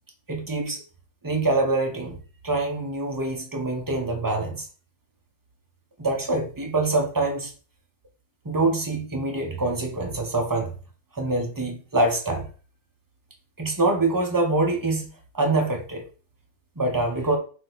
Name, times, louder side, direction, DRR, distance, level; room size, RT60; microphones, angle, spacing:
voice 1, 0.3-0.8 1.2-2.2 2.4-4.7 6.0-7.5 8.4-10.8 11.2-12.5 13.6-15.1 15.3-16.0 16.8-17.4, right 2 dB, 20° right, 2 dB, 0.8 m, -25 dB
4.5 x 2.9 x 3.9 m, 0.38 s
omnidirectional pair, 1.3 m